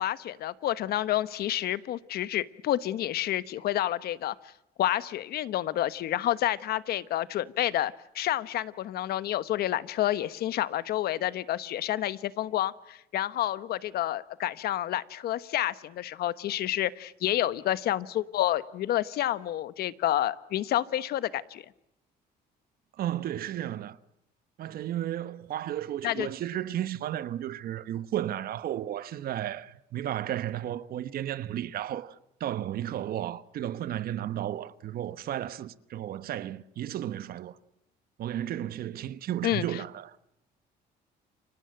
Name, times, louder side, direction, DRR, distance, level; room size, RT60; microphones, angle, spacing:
voice 1, 0.0-4.3 4.8-21.6 26.0-26.3 39.4-39.6, left 13 dB, 70° left, 1.2 m, -29 dB
voice 2, 22.9-24.0 24.6-37.6 38.2-40.2, right 12 dB, 60° right, 1.2 m, -33 dB
29.5 x 25.0 x 7.8 m
cardioid pair, 110°, 17 cm